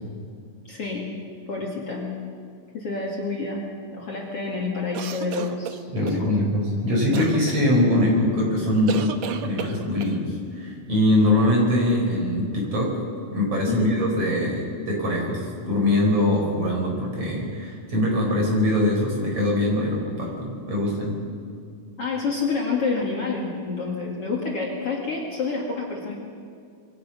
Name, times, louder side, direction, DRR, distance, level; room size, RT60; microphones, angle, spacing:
voice 1, 0.7-1.1 1.5-2.1 2.7-3.6 3.9-5.8 6.1-6.4 13.7-14.0 22.0-26.2, left 4 dB, 40° left, -2 dB, 3.0 m, -28 dB
sound 1, 4.9-6.2 7.1-7.6 8.9-10.2, right 8 dB, 65° right, 1.8 m, -32 dB
voice 2, 5.9-9.0 9.4-12.9 13.3-21.2, left 1 dB, 40° right, -1 dB, 6.3 m, -22 dB
27.0 x 23.0 x 6.1 m, 2.3 s
omnidirectional pair, 4.2 m